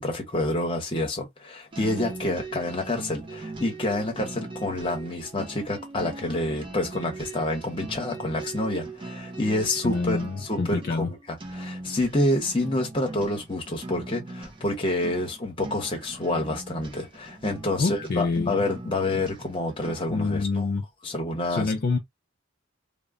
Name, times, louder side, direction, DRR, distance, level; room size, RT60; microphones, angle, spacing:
voice 1, 0.0-20.7 21.0-21.7, left 1 dB, 25° left, 0.8 m, -28 dB
sound 1, 1.7-20.3, right 2 dB, 25° right, 0.6 m, -40 dB
voice 2, 9.8-11.1 17.8-18.7 20.1-20.8 21.5-22.0, left 3 dB, 50° left, 0.4 m, -26 dB
2.1 x 2.1 x 3.5 m
head